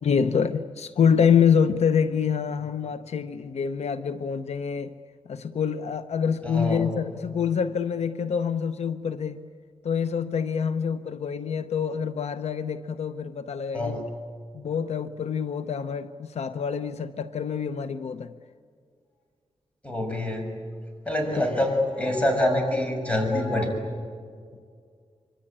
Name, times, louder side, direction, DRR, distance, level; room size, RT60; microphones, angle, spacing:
voice 1, 0.0-4.9 5.3-9.4 9.8-14.1 14.5-18.3, left 7 dB, 80° left, 11 dB, 0.8 m, -26 dB
voice 2, 6.4-6.9 13.7-14.0 19.8-20.5 21.0-23.7, left 1 dB, 10° left, 3 dB, 6.6 m, -25 dB
25.0 x 25.0 x 8.8 m, 2.1 s
wide cardioid pair, 110°, 11 cm